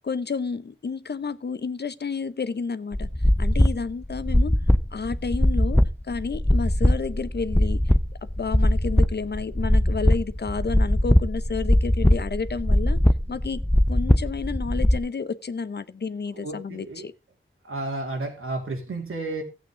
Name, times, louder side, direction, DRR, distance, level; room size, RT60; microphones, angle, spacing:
voice 1, 0.0-3.1 3.4-4.5 4.9-7.8 8.4-13.0 13.3-13.6 13.9-17.1, left 5 dB, 50° left, 0.7 m, -30 dB
sound 1, 2.9-15.0, left 1 dB, 5° left, 0.6 m, -21 dB
voice 2, 16.3-17.1 17.6-19.4, right 2 dB, 90° right, 2.9 m, -32 dB
14.5 x 8.2 x 3.7 m
wide cardioid pair, 100°, 21 cm